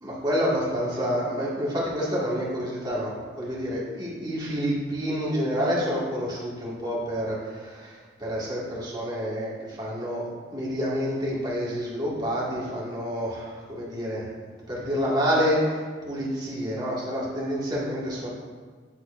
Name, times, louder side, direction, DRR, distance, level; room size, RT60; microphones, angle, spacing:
voice 1, 0.0-10.2 10.5-14.3 14.7-18.3, equal, 25° right, -7 dB, 2.0 m, -28 dB
8.9 x 7.9 x 2.6 m, 1.5 s
head